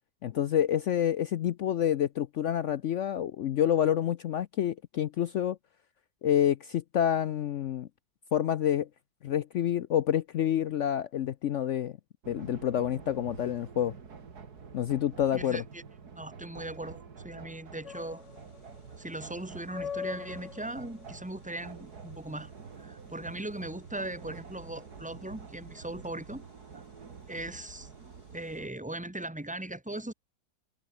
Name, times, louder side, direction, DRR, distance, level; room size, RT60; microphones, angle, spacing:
voice 1, 0.2-5.6 6.2-7.9 8.3-8.9 9.2-12.0 12.3-13.9 14.7-15.6, left 10 dB, 65° left, 0.7 m, -28 dB
sound 1, 12.2-28.7, right 5 dB, 65° right, 2.6 m, -48 dB
voice 2, 15.3-15.8 16.1-18.2 19.0-22.5 22.8-26.4 26.7-26.8 27.3-27.9 28.3-30.1, right 1 dB, 5° right, 1.9 m, -39 dB
sound 2, 17.8-28.6, left 7 dB, 50° left, 1.5 m, -46 dB
omnidirectional pair, 1.8 m